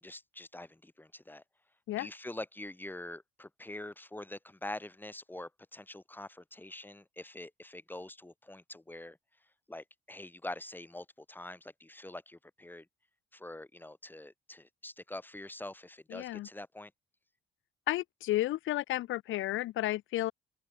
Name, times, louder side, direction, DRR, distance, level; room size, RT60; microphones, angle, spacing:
voice 1, 0.0-1.4 2.0-9.2 9.7-12.9 13.3-16.9, left 1 dB, 10° left, 2.9 m, -45 dB
voice 2, 16.1-16.5 17.9-20.3, left 15 dB, 80° left, 0.8 m, -32 dB
open air
cardioid pair, 90°, 20 cm